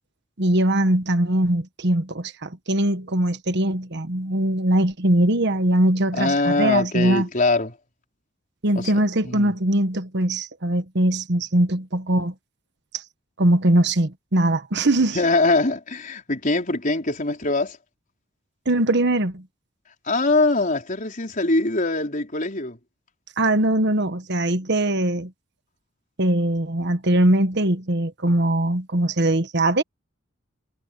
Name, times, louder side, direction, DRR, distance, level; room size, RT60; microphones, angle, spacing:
voice 1, 0.4-7.3 8.6-12.3 12.9-13.0 13.4-15.2 18.6-19.4 23.4-25.3 26.2-29.8, right 1 dB, 60° right, 1.4 m, -21 dB
voice 2, 6.2-7.7 8.7-9.5 15.1-17.8 20.0-22.8, left 2 dB, 45° left, 4.5 m, -22 dB
head